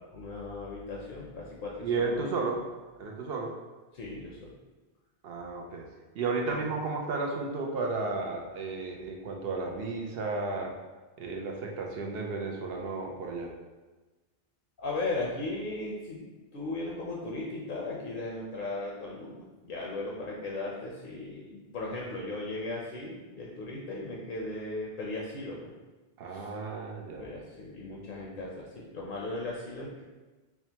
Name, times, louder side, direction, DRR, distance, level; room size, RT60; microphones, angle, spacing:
voice 1, 0.1-2.2 3.9-4.5 6.4-6.6 14.8-25.7 26.3-26.5 27.2-30.0, left 2 dB, 60° left, -3 dB, 0.7 m, -37 dB
voice 2, 1.8-2.6 3.0-3.5 5.2-5.8 6.1-10.7 11.2-13.5 26.2-27.3, right 3 dB, 70° right, 0 dB, 0.8 m, -33 dB
5.9 x 2.1 x 2.8 m, 1.2 s
omnidirectional pair, 1.1 m